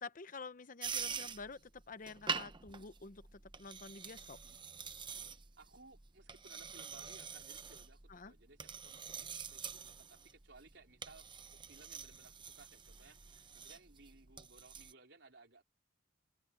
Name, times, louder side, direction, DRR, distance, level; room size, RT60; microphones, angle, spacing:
voice 1, 0.0-4.4 8.1-8.3, left 4 dB, 45° left, 0.8 m, -49 dB
sound 1, 0.8-14.9, right 6 dB, 25° right, 0.8 m, -46 dB
voice 2, 5.6-15.6, right 3 dB, 70° right, 4.6 m, -61 dB
head